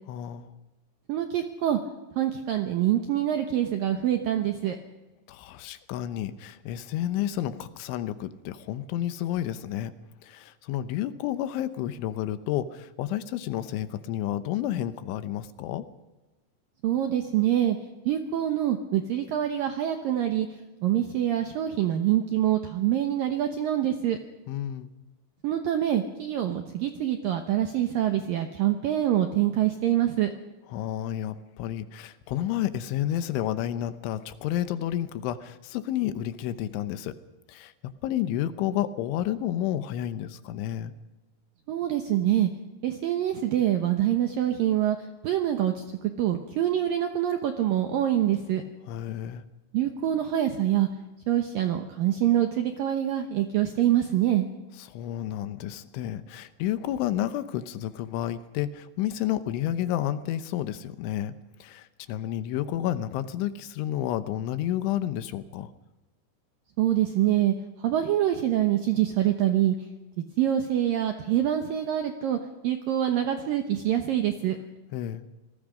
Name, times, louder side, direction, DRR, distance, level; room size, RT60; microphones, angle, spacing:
voice 1, 0.1-0.5 5.3-9.9 10.2-15.8 24.5-24.9 30.7-37.1 37.5-37.7 38.0-40.9 48.8-49.4 54.8-61.3 61.6-65.7 74.9-75.2, left 12 dB, 85° left, 12 dB, 3.3 m, -30 dB
voice 2, 1.1-1.8 2.2-4.8 16.8-17.8 18.1-20.5 20.8-24.2 25.4-30.3 41.7-42.5 42.8-45.0 45.2-48.6 49.7-50.9 51.3-54.5 66.8-67.5 67.8-69.8 70.4-74.6, right 11 dB, 80° right, 6 dB, 2.0 m, -25 dB
27.5 x 19.5 x 5.2 m, 1.1 s
omnidirectional pair, 5.5 m